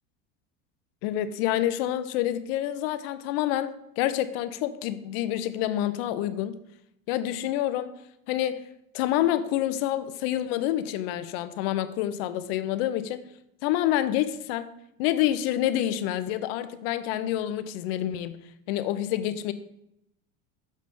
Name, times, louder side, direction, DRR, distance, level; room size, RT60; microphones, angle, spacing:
voice 1, 1.0-6.5 7.1-7.9 8.3-8.6 8.9-13.2 13.6-14.7 15.0-18.4 18.7-19.5, left 12 dB, 70° left, 12 dB, 0.6 m, -27 dB
6.5 x 3.2 x 5.3 m, 0.80 s
cardioid pair, 160°, 31 cm